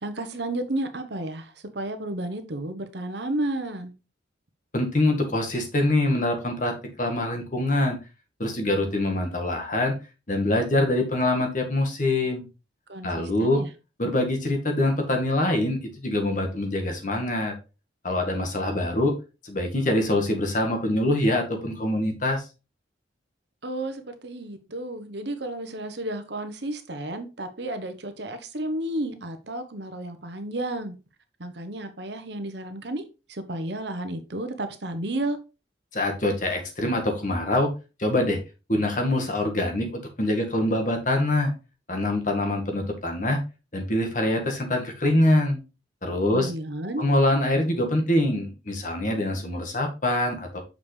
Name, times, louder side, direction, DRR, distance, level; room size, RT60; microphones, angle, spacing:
voice 1, 0.0-3.9 12.9-13.7 23.6-30.9 31.4-33.0 33.3-35.4 46.2-47.1, right 1 dB, 65° right, 1.0 m, -32 dB
voice 2, 4.7-8.0 8.4-9.9 10.3-12.4 13.0-13.6 14.0-17.5 18.0-19.1 19.4-22.5 35.9-37.7 38.0-38.4 38.7-41.5 41.9-43.4 43.7-45.6 46.0-46.5 47.0-50.6, left 1 dB, 40° left, 1.6 m, -24 dB
6.6 x 5.4 x 3.3 m
head